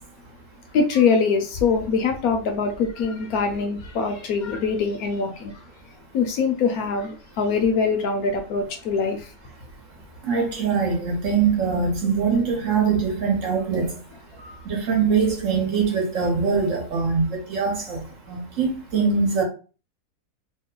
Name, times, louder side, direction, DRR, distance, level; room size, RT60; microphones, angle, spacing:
voice 1, 0.7-5.6 6.1-9.3, left 5 dB, 70° left, 1.0 m, -23 dB
voice 2, 10.2-14.0 14.7-18.0 18.3-19.4, right 5 dB, 55° right, 1.2 m, -22 dB
2.9 x 2.2 x 3.7 m
omnidirectional pair, 1.7 m